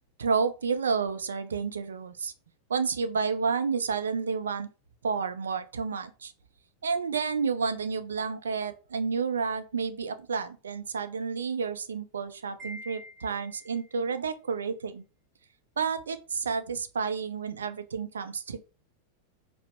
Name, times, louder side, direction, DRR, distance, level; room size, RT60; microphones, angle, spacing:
voice 1, 0.2-2.3 2.7-4.7 5.0-6.3 6.8-15.0 15.8-18.6, right 5 dB, 70° right, 0.4 m, -30 dB
Wind chime, 12.6-14.0, left 1 dB, 5° right, 1.0 m, -45 dB
4.6 x 2.0 x 3.3 m
figure-of-eight pair, 90°, 0 cm